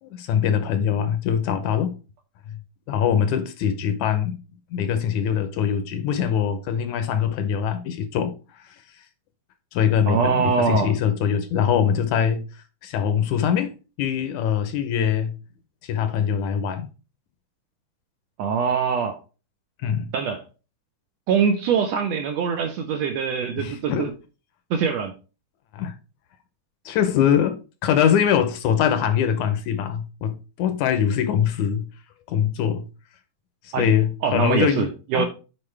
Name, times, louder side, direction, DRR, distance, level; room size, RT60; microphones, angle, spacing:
voice 1, 0.0-2.0 2.5-2.6 2.9-4.4 4.7-8.3 8.7-8.8 9.7-12.4 12.8-13.7 14.0-15.4 15.8-16.9 19.8-20.1 23.6-24.1 25.7-25.9 26.9-31.9 32.3-32.9 33.6-35.3, left 8 dB, 75° left, 2.0 m, -23 dB
voice 2, 10.1-10.9 18.4-19.2 20.1-20.4 21.3-24.1 24.7-25.1 33.7-33.9 34.2-35.2, right 6 dB, 75° right, 1.6 m, -23 dB
8.7 x 4.6 x 3.2 m
omnidirectional pair, 3.7 m